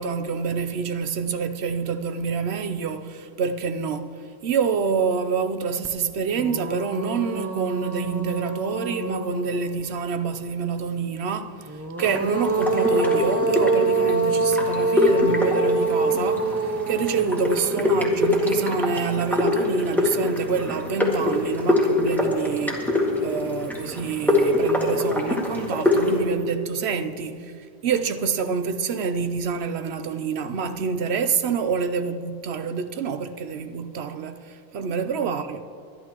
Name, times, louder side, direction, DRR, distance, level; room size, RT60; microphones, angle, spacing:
voice 1, 0.0-35.6, right 5 dB, 85° right, 1.0 m, -27 dB
sound 1, 5.8-5.9 6.3-10.0 11.7-18.9, right 3 dB, 20° right, 0.5 m, -26 dB
sound 2, 12.0-26.2, left 2 dB, ahead, 1.9 m, -24 dB
25.0 x 11.0 x 3.0 m
omnidirectional pair, 1.0 m